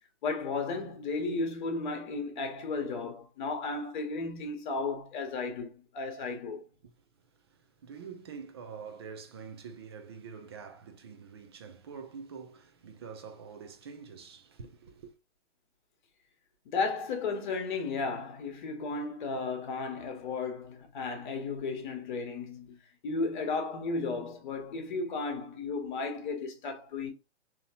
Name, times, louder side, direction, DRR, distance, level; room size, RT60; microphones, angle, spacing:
voice 1, 0.2-6.7 16.6-22.8 23.0-27.1, left 3 dB, 45° left, 1.1 m, -34 dB
voice 2, 6.8-15.1, right 6 dB, 25° right, 0.4 m, -46 dB
3.7 x 2.9 x 2.7 m
figure-of-eight pair, 125°, 35 cm